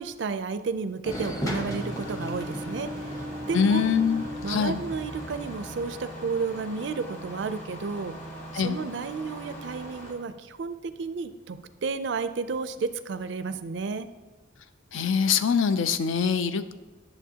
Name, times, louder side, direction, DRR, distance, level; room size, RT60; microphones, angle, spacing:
voice 1, 0.0-3.1 3.5-3.9 4.4-8.2 8.5-14.1, right 4 dB, 60° right, 11 dB, 0.4 m, -32 dB
sound 1, 1.0-6.0, equal, 15° left, 0.8 m, -35 dB
Engine starting, 1.8-10.1, equal, 35° left, 1.4 m, -42 dB
voice 2, 3.5-4.8 8.5-8.8 14.9-16.7, left 6 dB, 70° left, 12 dB, 0.4 m, -24 dB
11.0 x 6.9 x 2.8 m, 1.2 s
head